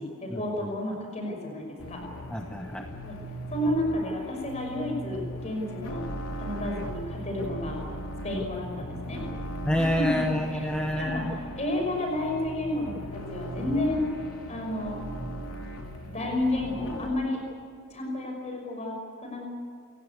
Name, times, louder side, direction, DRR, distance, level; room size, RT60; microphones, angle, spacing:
voice 1, 0.0-2.0 2.6-3.2 3.5-6.0 6.4-7.8 8.2-9.2 9.7-10.2 11.0-11.2 11.5-14.1 14.5-15.1 16.1-17.4 17.9-19.4, left 1 dB, 30° left, 1 dB, 5.9 m, -31 dB
sound 1, 1.8-17.1, equal, 85° left, 3.1 m, -38 dB
voice 2, 2.3-2.9 9.6-11.4, left 1 dB, 5° left, 3 dB, 1.0 m, -28 dB
28.0 x 16.0 x 8.4 m, 2.4 s
head